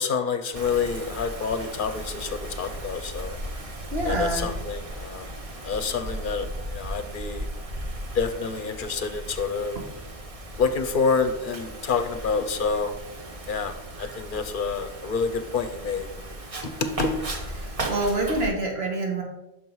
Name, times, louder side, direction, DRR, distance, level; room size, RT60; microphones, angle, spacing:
voice 1, 0.0-3.4 4.0-5.3 5.6-6.5 6.7-7.5 8.1-9.8 10.6-12.9 13.5-16.1 16.6-17.1, left 5 dB, 60° left, 9 dB, 0.7 m, -28 dB
Wind, 0.5-18.5, right 1 dB, 35° right, 0.9 m, -36 dB
voice 2, 3.9-4.5 9.8-9.9 17.6-19.2, right 2 dB, 80° right, 0 dB, 1.7 m, -27 dB
6.2 x 4.6 x 5.4 m, 0.91 s
omnidirectional pair, 1.0 m